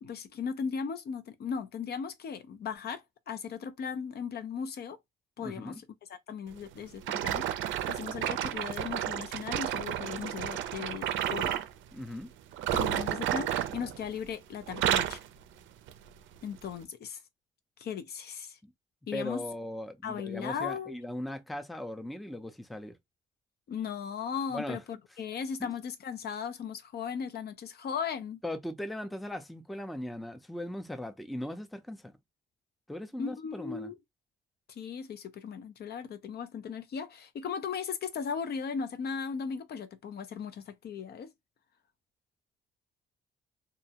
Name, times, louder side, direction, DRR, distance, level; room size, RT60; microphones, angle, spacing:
voice 1, 0.0-5.0 5.4-5.8 6.1-7.5 7.9-11.6 12.7-15.2 16.4-17.2 17.8-18.6 19.1-19.4 20.0-20.9 23.7-28.4 33.2-34.0 34.7-41.3, left 6 dB, 55° left, 0.5 m, -37 dB
voice 2, 5.4-5.8 11.9-12.3 18.6-18.7 19.1-23.0 24.5-24.8 28.4-32.1 32.9-33.9, left 1 dB, ahead, 0.4 m, -38 dB
sound 1, 7.0-11.7 12.5-14.3 14.6-15.3 15.9-16.1 16.7-16.8, right 11 dB, 75° right, 0.4 m, -31 dB
2.4 x 2.1 x 2.8 m
cardioid pair, 90°, 20 cm